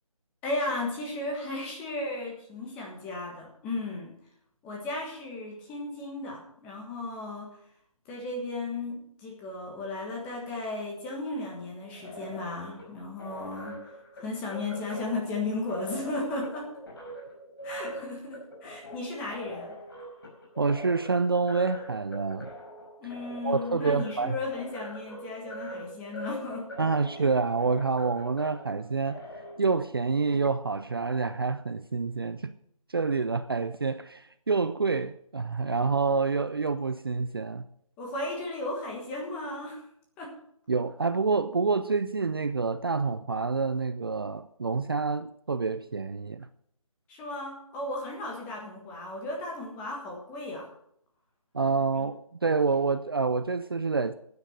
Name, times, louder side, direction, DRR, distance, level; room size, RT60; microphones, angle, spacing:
voice 1, 0.4-4.1 4.6-7.6 8.0-16.7 17.6-19.7 23.0-26.7 38.0-39.9 40.2-40.3 47.1-50.7 52.0-52.1, left 2 dB, 5° left, 1.4 m, -35 dB
sound 1, 11.8-29.5, equal, 40° left, 5.1 m, -43 dB
voice 2, 20.6-22.5 23.4-24.4 26.8-29.2 29.6-32.5 32.9-37.6 40.7-46.5 51.5-54.1, right 4 dB, 40° right, 0.4 m, -27 dB
11.5 x 9.6 x 6.3 m
figure-of-eight pair, 170°, 18 cm